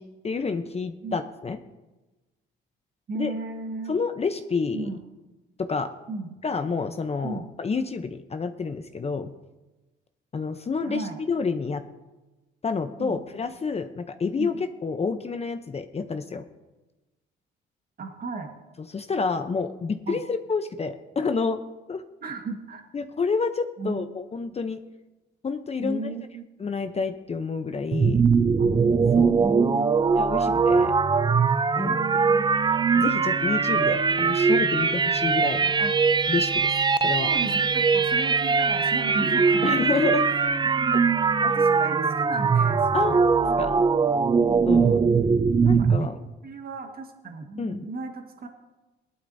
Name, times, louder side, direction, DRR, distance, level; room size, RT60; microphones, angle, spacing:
voice 1, 0.0-1.6 3.1-3.3 3.9-4.9 5.6-5.9 6.4-9.3 10.3-11.8 12.6-16.4 18.9-21.6 21.9-22.0 22.9-24.8 25.4-26.1 26.6-28.2 29.1-29.5 30.2-30.9 31.8-32.0 32.9-35.8 36.3-36.8 37.0-37.3 39.6-40.3 40.9-41.0 42.9-43.2 43.6-43.9 44.7-45.0 45.6-46.2 47.6-47.8, left 4 dB, 30° left, 8 dB, 0.7 m, -29 dB
voice 2, 3.1-3.9 4.7-5.0 6.1-6.4 7.2-7.5 10.8-11.2 13.0-13.2 14.4-14.5 18.0-18.5 20.1-20.2 22.2-22.8 23.8-24.1 25.8-26.5 28.6-28.7 29.4-30.1 30.4-30.6 31.8-32.5 35.8-35.9 37.2-40.4 41.4-43.2 44.3-44.4 44.8-45.0 45.6-48.5, right 3 dB, 50° right, 4 dB, 1.6 m, -35 dB
sound 1, 27.9-46.1, right 5 dB, 20° right, 0.4 m, -21 dB
17.0 x 12.0 x 2.7 m, 1.1 s
cardioid pair, 90°, 20 cm